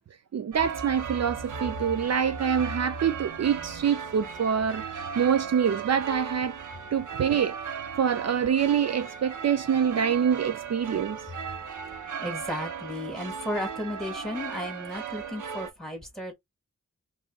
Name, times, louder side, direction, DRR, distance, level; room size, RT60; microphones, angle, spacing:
voice 1, 0.3-6.6 6.9-7.5 8.0-11.2, right 7 dB, 60° right, 0.4 m, -25 dB
sound 1, 0.5-15.7, right 6 dB, 85° right, 0.8 m, -37 dB
voice 2, 11.9-16.3, left 1 dB, ahead, 2.1 m, -34 dB
5.3 x 2.7 x 2.3 m
wide cardioid pair, 85°, 30 cm